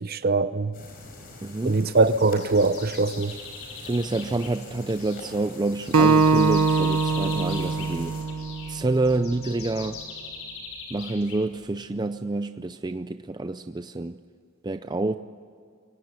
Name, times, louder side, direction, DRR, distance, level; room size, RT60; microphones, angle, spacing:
voice 1, 0.0-0.7 1.6-3.4, right 3 dB, 45° right, 0.8 m, -22 dB
sound 1, 0.7-8.2, left 2 dB, 40° left, 5.3 m, -44 dB
voice 2, 1.4-1.8 3.8-8.2 8.7-10.0 10.9-14.2 14.6-15.2, right 2 dB, 20° right, 0.5 m, -28 dB
sound 2, 2.0-11.9, left 4 dB, 70° left, 4.9 m, -41 dB
Acoustic guitar, 5.9-9.2, right 4 dB, 80° right, 0.9 m, -22 dB
23.5 x 18.0 x 8.1 m
head